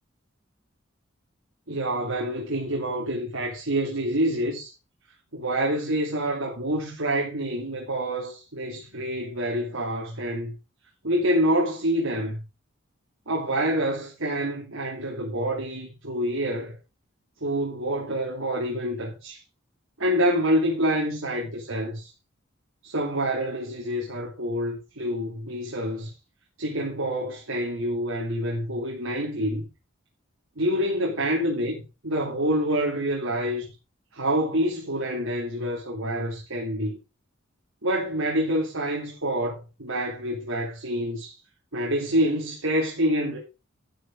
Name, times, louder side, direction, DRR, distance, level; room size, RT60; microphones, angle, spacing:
voice 1, 1.7-4.7 5.3-10.6 11.0-12.5 13.3-16.8 17.4-19.4 20.0-22.1 22.8-26.1 26.6-29.7 30.6-33.7 34.1-37.0 37.8-41.4 41.7-43.4, equal, 85° right, 2.9 m, -27 dB
12.5 x 6.7 x 4.8 m
head